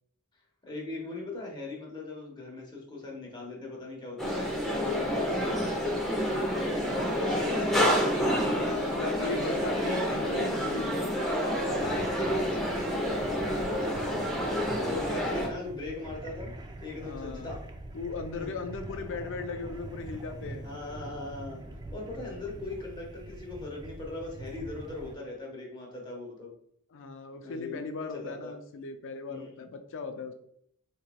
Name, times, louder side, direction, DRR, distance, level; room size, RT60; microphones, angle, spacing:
voice 1, 0.6-4.4 4.7-5.9 6.2-10.9 11.2-14.2 14.8-16.5 16.8-17.6 18.3-18.5 20.6-21.6 21.9-26.5 27.4-27.8 28.2-28.5 29.3-29.5, left 3 dB, 20° left, -2 dB, 1.1 m, -39 dB
sound 1, 4.2-15.5, equal, ahead, 0.7 m, -29 dB
voice 2, 8.2-11.0 14.5-15.2 17.0-17.5 17.9-20.6 22.1-22.4 26.9-30.3, left 4 dB, 60° left, 7 dB, 0.5 m, -38 dB
sound 2, 11.7-25.1, right 1 dB, 20° right, 0.3 m, -44 dB
4.2 x 3.0 x 2.2 m, 0.69 s
head